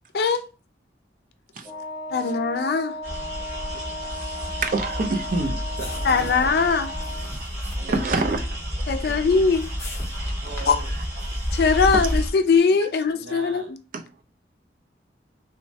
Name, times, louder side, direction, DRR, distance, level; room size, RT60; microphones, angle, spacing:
Wind instrument woodwind instrument, 1.6-7.4, left 2 dB, 20° right, 0.9 m, -35 dB
voice 1, 2.1-3.0 6.0-6.9 8.9-9.7 10.7-10.8 11.5-13.8, left 5 dB, 60° left, 0.3 m, -21 dB
sound 1, 3.0-12.3, equal, 65° right, 1.3 m, -30 dB
voice 2, 3.7-5.6 7.8-8.4 11.8-12.0 13.9-14.0, right 3 dB, 45° right, 0.4 m, -27 dB
sound 2, 5.0-12.5, left 2 dB, 15° left, 0.6 m, -45 dB
voice 3, 5.8-6.5 7.6-8.5 9.0-9.3 10.4-10.9 12.0-12.1 13.1-13.7, right 3 dB, 85° right, 0.7 m, -39 dB
3.1 x 2.1 x 2.6 m
head